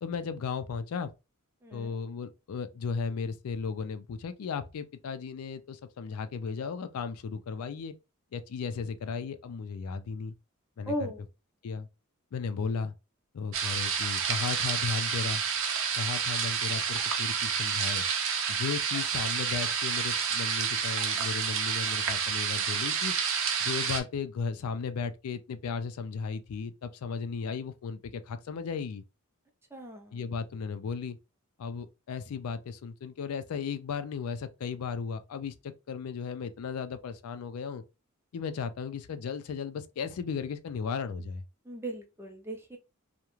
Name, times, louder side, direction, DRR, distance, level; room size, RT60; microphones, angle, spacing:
voice 1, 0.0-1.1 1.7-7.9 8.3-10.3 10.8-11.1 11.6-11.9 12.3-12.9 13.3-15.4 16.0-18.0 18.5-23.1 23.6-29.0 30.1-31.2 31.6-37.8 38.3-41.4, left 5 dB, 90° left, 0.4 m, -35 dB
voice 2, 1.6-2.0 10.9-11.2 29.7-30.2 41.6-42.8, right 1 dB, 10° right, 0.5 m, -37 dB
sound 1, 13.5-24.0, right 6 dB, 65° right, 0.5 m, -29 dB
2.3 x 2.1 x 3.0 m
head